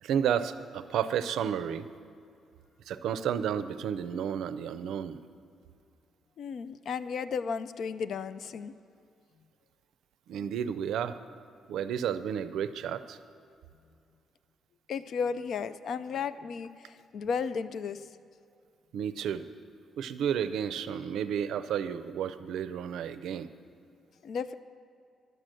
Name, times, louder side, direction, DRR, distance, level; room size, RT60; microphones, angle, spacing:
voice 1, 0.0-1.9 2.9-5.2 10.3-11.2 11.7-13.2 18.9-19.5 20.0-23.5, right 8 dB, 85° right, 13 dB, 0.4 m, -32 dB
voice 2, 6.4-8.7 14.9-18.1 24.2-24.6, left 6 dB, 60° left, 14 dB, 0.4 m, -34 dB
11.0 x 7.6 x 6.5 m, 2.4 s
cardioid pair, 150°, 0 cm